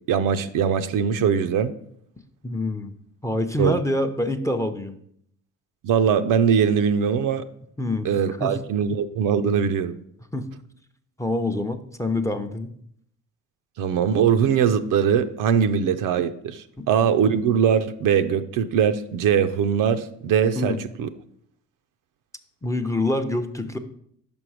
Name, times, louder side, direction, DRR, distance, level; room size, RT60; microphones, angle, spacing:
voice 1, 0.1-1.7 3.6-3.7 5.8-7.5 8.0-9.9 13.8-21.1, right 7 dB, 65° right, 9 dB, 0.6 m, -21 dB
voice 2, 2.4-2.9 3.2-5.0 7.8-8.1 8.4-8.5 10.3-10.4 11.2-12.7 16.8-16.9 20.5-20.8 22.6-23.8, left 1 dB, 10° left, 8 dB, 0.6 m, -26 dB
5.4 x 5.2 x 4.8 m, 0.69 s
supercardioid pair, 60°, 34 cm